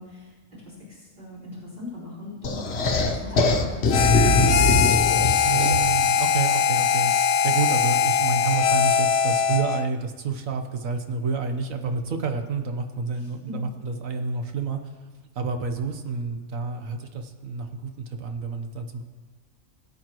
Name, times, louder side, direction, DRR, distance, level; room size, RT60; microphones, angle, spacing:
voice 1, 0.0-4.5 13.1-13.5, left 1 dB, 40° right, -7 dB, 4.7 m, -40 dB
sound 1, 2.4-6.0, left 2 dB, 55° left, 1.2 m, -22 dB
Harmonica, 3.9-9.9, left 7 dB, 85° left, 1.0 m, -21 dB
voice 2, 5.4-14.9 15.3-19.0, right 4 dB, 75° right, 6 dB, 1.4 m, -29 dB
21.5 x 8.8 x 3.0 m, 1.5 s
omnidirectional pair, 1.4 m